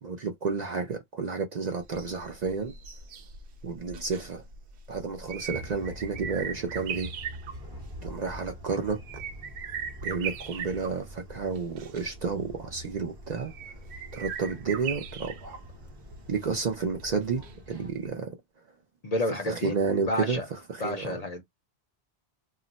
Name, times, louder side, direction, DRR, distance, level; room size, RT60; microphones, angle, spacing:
voice 1, 0.0-2.8 3.6-4.4 4.9-7.1 8.0-9.2 10.0-13.5 14.1-15.6 16.3-18.4 19.3-21.2, right 5 dB, 50° right, 0.6 m, -31 dB
sound 1, 1.8-17.8 18.1-18.2, right 6 dB, 90° right, 0.9 m, -40 dB
sound 2, 5.5-17.9, equal, 25° right, 0.8 m, -46 dB
voice 2, 19.0-19.7 20.1-20.4 20.8-21.4, left 1 dB, 45° left, 0.6 m, -30 dB
2.4 x 2.1 x 3.9 m
omnidirectional pair, 1.1 m